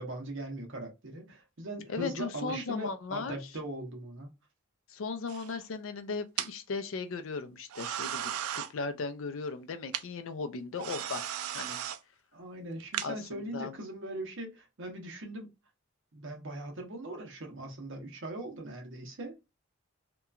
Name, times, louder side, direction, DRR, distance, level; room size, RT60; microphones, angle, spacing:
voice 1, 0.0-4.3 12.3-15.5 16.1-19.3, right 1 dB, 60° right, 0.9 m, -40 dB
voice 2, 1.9-3.4 4.9-11.2 11.5-11.8 13.0-13.7, left 4 dB, 65° left, 0.4 m, -37 dB
sound 1, 5.3-5.6 6.4-6.5 7.7-8.7 9.9-10.0 10.8-12.0 12.8-13.1, right 10 dB, 85° right, 0.3 m, -35 dB
2.8 x 2.2 x 2.4 m
head